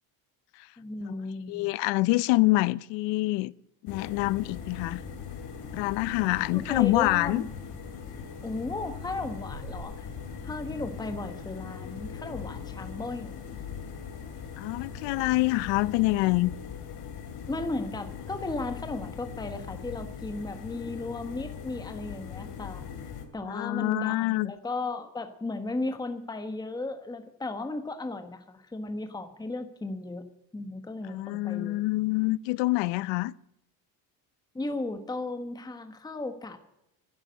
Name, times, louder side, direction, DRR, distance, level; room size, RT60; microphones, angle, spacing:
voice 1, 0.8-1.7 6.5-7.5 8.4-10.1 10.4-13.4 17.5-22.8 23.3-30.3 30.5-31.8 34.5-36.6, left 2 dB, 10° left, 1.2 m, -35 dB
voice 2, 1.5-3.5 3.8-5.0 5.7-7.5 14.6-16.5 23.4-24.5 31.1-33.3, left 20 dB, 80° left, 0.7 m, -26 dB
sound 1, 3.9-23.2, left 7 dB, 65° left, 2.6 m, -40 dB
sound 2, 4.0-16.2, right 6 dB, 75° right, 3.3 m, -51 dB
11.5 x 10.5 x 7.9 m
cardioid pair, 115°, 43 cm